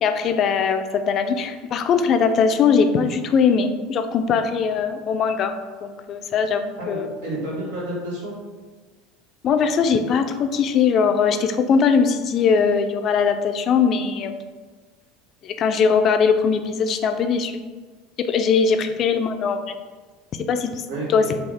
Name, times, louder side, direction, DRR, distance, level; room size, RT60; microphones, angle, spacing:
voice 1, 0.0-5.5 5.8-7.1 9.4-14.4 15.4-17.5 18.3-19.7 20.5-20.8 21.1-21.2, left 6 dB, 45° left, 8 dB, 0.3 m, -20 dB
voice 2, 6.8-8.3 20.9-21.4, right 1 dB, 90° right, -6 dB, 1.4 m, -30 dB
3.5 x 2.4 x 3.4 m, 1.4 s
supercardioid pair, 105°, 0 cm